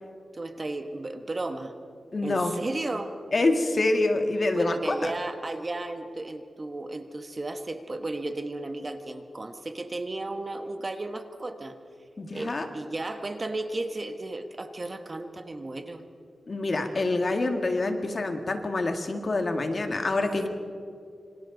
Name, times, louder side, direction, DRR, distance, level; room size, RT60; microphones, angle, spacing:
voice 1, 0.3-1.7 2.2-3.1 4.5-11.8 12.3-16.1 20.2-20.4, right 2 dB, 35° right, 7 dB, 1.3 m, -34 dB
voice 2, 2.1-2.6 3.3-5.1 12.2-12.7 16.5-20.5, left 2 dB, 45° left, 5 dB, 2.0 m, -26 dB
27.0 x 25.5 x 4.0 m, 2.4 s
wide cardioid pair, 105°, 0 cm